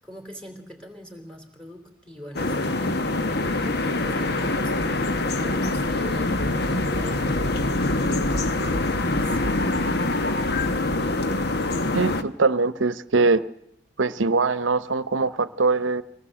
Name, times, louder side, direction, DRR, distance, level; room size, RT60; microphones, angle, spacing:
voice 1, 0.0-9.4, equal, 5° left, 3.1 m, -41 dB
sound 1, 2.3-12.2, left 2 dB, 55° left, 1.1 m, -24 dB
voice 2, 11.9-13.4 14.0-16.0, right 3 dB, 90° right, 0.8 m, -22 dB
24.5 x 18.5 x 7.6 m
head